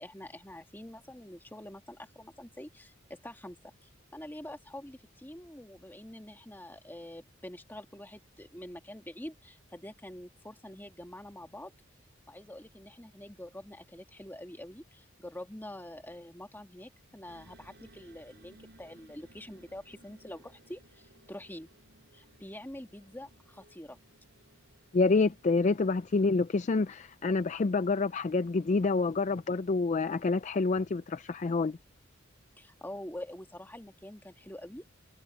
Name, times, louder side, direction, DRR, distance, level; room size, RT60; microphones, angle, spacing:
voice 1, 0.0-11.7 12.3-21.7 22.1-24.0 32.6-34.8, left 1 dB, 10° left, 1.9 m, -46 dB
sound 1, 17.3-28.5, right 1 dB, 55° right, 6.3 m, -61 dB
voice 2, 24.9-31.8, left 3 dB, 35° left, 0.4 m, -27 dB
head